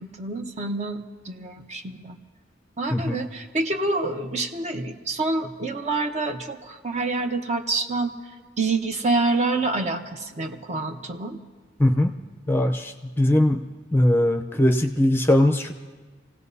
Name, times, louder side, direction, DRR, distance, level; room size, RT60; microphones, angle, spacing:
voice 1, 0.2-1.0 1.2-2.2 2.8-8.2 8.6-11.4, right 3 dB, 40° right, 5 dB, 0.9 m, -27 dB
voice 2, 11.8-12.1 12.5-13.6 13.9-15.7, left 1 dB, 10° left, 4 dB, 0.6 m, -20 dB
28.0 x 17.0 x 2.7 m, 1.4 s
head